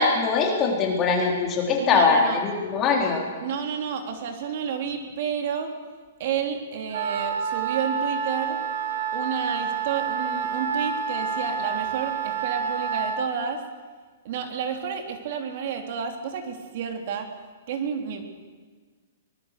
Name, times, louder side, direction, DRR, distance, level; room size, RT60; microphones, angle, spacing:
voice 1, 0.0-3.2, left 4 dB, 20° left, 0 dB, 3.8 m, -22 dB
voice 2, 1.8-2.4 3.4-5.8 6.2-8.6 9.1-13.6 14.2-17.3 17.7-18.2, right 7 dB, 45° right, 4 dB, 3.3 m, -30 dB
Wind instrument woodwind instrument, 6.9-13.3, right 6 dB, 80° right, 2.9 m, -28 dB
24.5 x 19.5 x 6.7 m, 1.5 s
hypercardioid pair, 165°, 0 cm